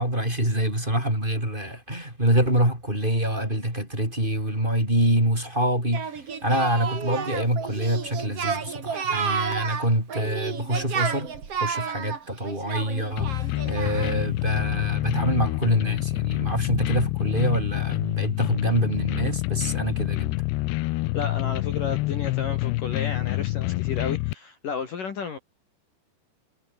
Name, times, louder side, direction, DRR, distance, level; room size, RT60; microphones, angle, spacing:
voice 1, 0.0-11.3 11.6-20.4, right 1 dB, 10° right, 7.6 m, -26 dB
Singing, 5.9-14.3, right 6 dB, 40° right, 3.1 m, -31 dB
sound 1, 13.2-24.3, left 20 dB, 80° left, 2.7 m, -27 dB
voice 2, 21.1-25.4, left 6 dB, 50° left, 4.1 m, -32 dB
omnidirectional pair, 5.1 m